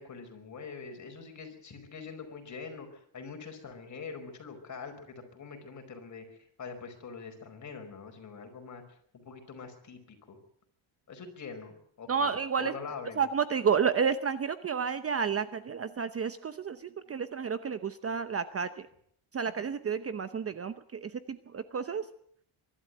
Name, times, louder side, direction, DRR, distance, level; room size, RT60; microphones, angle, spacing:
voice 1, 0.0-10.4 11.1-13.2, left 5 dB, 35° left, 5 dB, 5.0 m, -44 dB
voice 2, 12.1-12.7 13.2-18.9 19.3-22.1, right 6 dB, 30° right, 12 dB, 0.8 m, -31 dB
23.5 x 12.5 x 9.2 m, 0.67 s
cardioid pair, 145°, 48 cm